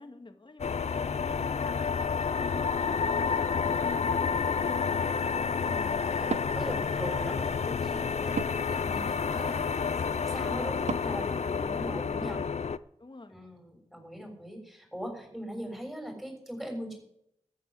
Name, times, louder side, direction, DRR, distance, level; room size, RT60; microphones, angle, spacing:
voice 1, 0.0-2.9 3.2-4.8 11.6-11.9 12.2-12.6 13.0-13.4, left 2 dB, 40° left, 7 dB, 2.1 m, -48 dB
sound 1, 0.6-12.8, left 5 dB, 65° left, 0.6 m, -29 dB
voice 2, 5.6-8.4 8.7-12.4 13.3-17.0, equal, ahead, 2 dB, 6.8 m, -41 dB
Wood, 6.2-12.2, right 6 dB, 70° right, 0.5 m, -42 dB
14.0 x 9.9 x 7.8 m, 0.74 s
wide cardioid pair, 65°, 12 cm